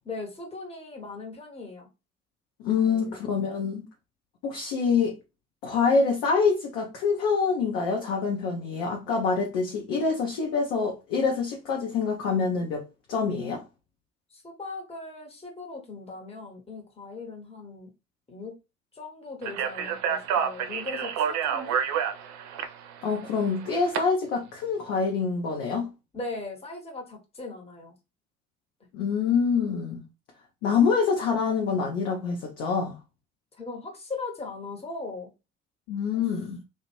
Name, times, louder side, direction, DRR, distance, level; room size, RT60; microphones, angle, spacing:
voice 1, 0.1-1.9 2.8-3.2 14.3-17.9 18.3-18.6 18.9-21.8 26.1-27.9 33.6-35.3 36.1-36.2, left 3 dB, 15° left, 1.0 m, -39 dB
voice 2, 2.6-3.8 4.4-5.1 5.6-13.6 23.0-25.9 28.9-30.0 30.6-33.0 35.9-36.6, left 5 dB, 65° left, 0.6 m, -26 dB
Speech, 19.4-24.0, right 8 dB, 55° right, 0.5 m, -29 dB
2.4 x 2.1 x 3.0 m
figure-of-eight pair, 45°, 35 cm